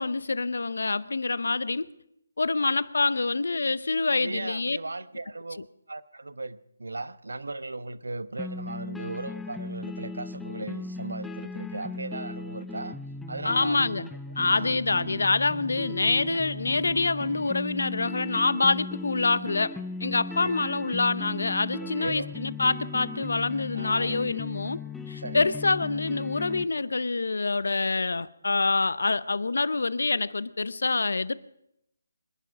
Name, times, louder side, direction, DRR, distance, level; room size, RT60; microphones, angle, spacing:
voice 1, 0.0-1.9 2.4-4.8 13.4-14.1 14.4-24.8 25.1-31.3, left 3 dB, 75° left, 18 dB, 0.7 m, -26 dB
voice 2, 4.1-13.0 13.3-13.9 14.5-14.7 20.3-20.6 21.8-22.3 23.7-24.2 25.2-25.6, right 2 dB, 90° right, 14 dB, 1.0 m, -37 dB
sound 1, 8.4-26.6, left 3 dB, 5° left, 0.6 m, -38 dB
25.5 x 11.5 x 4.9 m, 0.80 s
figure-of-eight pair, 160°, 0 cm